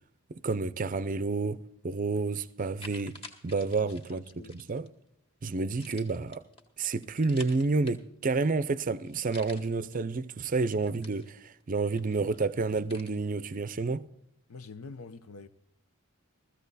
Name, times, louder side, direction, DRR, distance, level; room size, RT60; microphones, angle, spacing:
voice 1, 0.3-3.2 3.4-4.2 4.5-4.9 5.4-6.4 6.8-14.1, right 3 dB, 35° right, 0.5 m, -30 dB
sound 1, 1.9-2.0 2.5-4.9 5.7-8.3 8.6-8.7 9.0-10.0 10.4-11.6 12.0-13.1, left 2 dB, 25° left, 1.8 m, -50 dB
voice 2, 3.8-4.6 14.5-15.5, left 4 dB, 80° left, 0.7 m, -46 dB
16.0 x 14.5 x 4.1 m
head